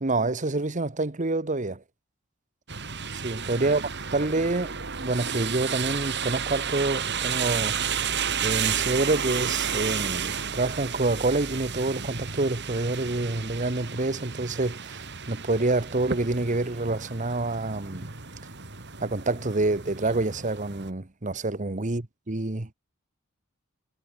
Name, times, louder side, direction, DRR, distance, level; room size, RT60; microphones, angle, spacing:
voice 1, 0.0-1.8 3.2-3.8 4.1-7.8 8.4-18.1 19.0-22.7, right 2 dB, 40° right, 1.3 m, -27 dB
sound 1, 2.7-20.9, right 7 dB, 60° right, 4.1 m, -32 dB
head